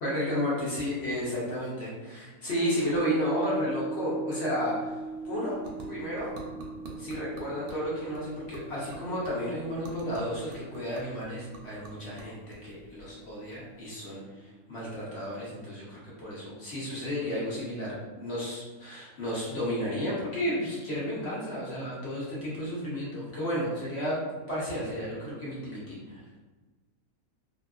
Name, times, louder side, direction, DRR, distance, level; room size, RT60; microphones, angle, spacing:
voice 1, 0.0-5.0 5.2-5.6 5.9-6.3 7.0-24.2 24.5-26.2, equal, 55° left, -7 dB, 0.9 m, -32 dB
sound 1, 2.9-13.3 13.7-13.8, right 3 dB, 5° right, 0.5 m, -40 dB
sound 2, 4.7-14.1, right 2 dB, 90° right, 1.1 m, -49 dB
2.8 x 2.5 x 2.3 m, 1.3 s
omnidirectional pair, 1.5 m